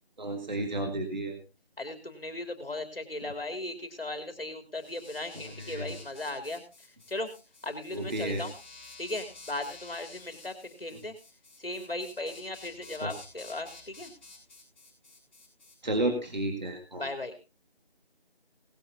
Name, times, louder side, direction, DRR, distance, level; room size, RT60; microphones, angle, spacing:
voice 1, 0.2-1.4 5.3-6.0 7.9-8.4 13.0-13.1 15.8-17.1, right 1 dB, 45° right, 4 dB, 1.9 m, -32 dB
voice 2, 1.8-6.6 7.1-7.3 7.6-8.5 9.0-11.1 11.6-14.1 17.0-17.3, left 2 dB, 65° left, 6 dB, 3.1 m, -37 dB
sound 1, 4.7-15.7, left 3 dB, 10° left, 6.7 m, -51 dB
19.0 x 11.5 x 2.7 m, 0.29 s
figure-of-eight pair, 170°, 31 cm